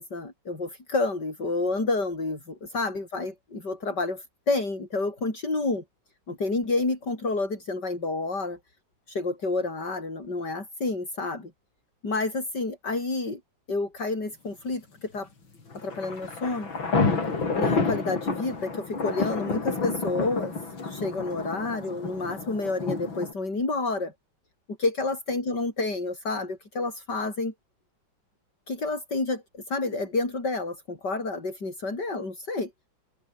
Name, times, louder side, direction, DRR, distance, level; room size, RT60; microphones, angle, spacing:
voice 1, 0.0-5.8 6.3-8.6 9.1-11.5 12.0-13.4 13.7-15.3 15.7-16.7 17.5-20.5 20.8-24.1 24.8-27.5 28.7-32.7, left 3 dB, 55° left, 6.5 m, -29 dB
sound 1, 15.7-23.3, left 4 dB, 75° left, 4.9 m, -29 dB
omnidirectional pair, 2.2 m